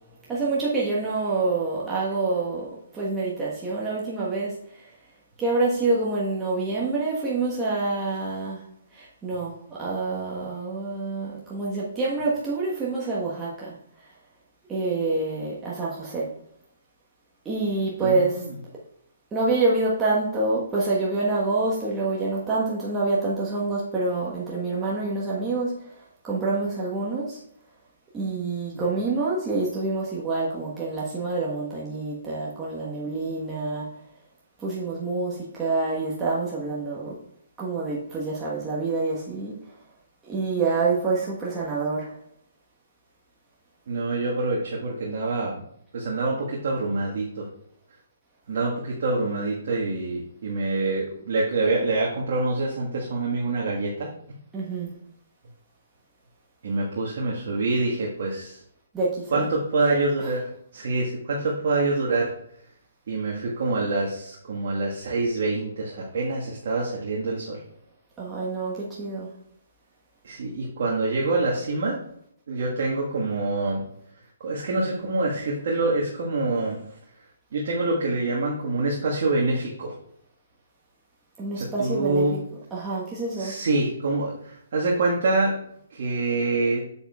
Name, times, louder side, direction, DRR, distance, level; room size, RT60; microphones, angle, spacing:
voice 1, 0.3-4.9 5.4-8.6 8.9-13.8 14.7-16.3 17.4-18.4 19.3-27.4 28.1-33.9 34.6-37.2 37.6-39.6 40.2-42.1 54.5-54.9 58.9-59.5 60.2-60.3 68.2-69.3 81.4-82.2 82.7-83.6, right 3 dB, 15° right, -6 dB, 1.2 m, -27 dB
voice 2, 18.0-18.5 28.7-28.8 43.9-45.6 45.9-47.5 48.5-54.1 56.6-58.6 59.3-62.3 63.1-67.6 70.2-72.0 72.5-73.8 74.4-76.8 77.5-79.9 81.5-82.4 83.4-85.6 85.9-86.8, right 2 dB, 55° right, -3 dB, 1.5 m, -26 dB
8.7 x 7.2 x 2.3 m, 0.70 s
figure-of-eight pair, 135°, 0 cm